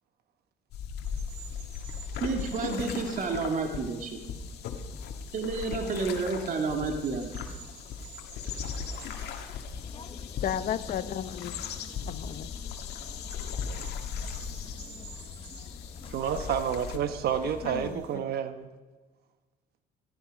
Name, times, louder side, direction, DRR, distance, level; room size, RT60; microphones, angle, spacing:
sound 1, 0.7-17.0, left 6 dB, 75° left, 1.7 m, -38 dB
sound 2, 1.0-18.1, right 5 dB, 85° right, 3.3 m, -53 dB
voice 1, 2.2-4.2 5.3-7.3, right 4 dB, 50° right, 3 dB, 1.9 m, -30 dB
sound 3, 9.7-17.9, left 5 dB, 30° left, 1.1 m, -45 dB
voice 2, 10.4-11.7 12.1-12.5 17.6-18.2, left 10 dB, 55° left, 13 dB, 0.9 m, -34 dB
voice 3, 16.1-18.7, right 8 dB, 65° right, 10 dB, 1.1 m, -30 dB
18.0 x 13.5 x 5.2 m, 1.3 s
cardioid pair, 105°, 17 cm